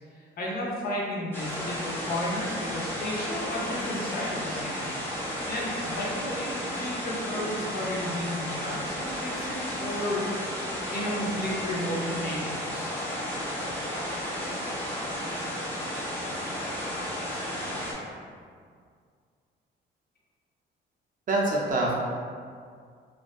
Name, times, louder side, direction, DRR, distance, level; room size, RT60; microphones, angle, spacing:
voice 1, 0.1-4.9 5.5-13.0, left 1 dB, 50° left, -4 dB, 0.6 m, -33 dB
sound 1, 1.3-17.9, equal, 10° left, 0.6 m, -33 dB
voice 2, 21.3-22.0, right 2 dB, 45° right, -3 dB, 0.5 m, -25 dB
2.5 x 2.2 x 2.3 m, 2.1 s
cardioid pair, 90°, 20 cm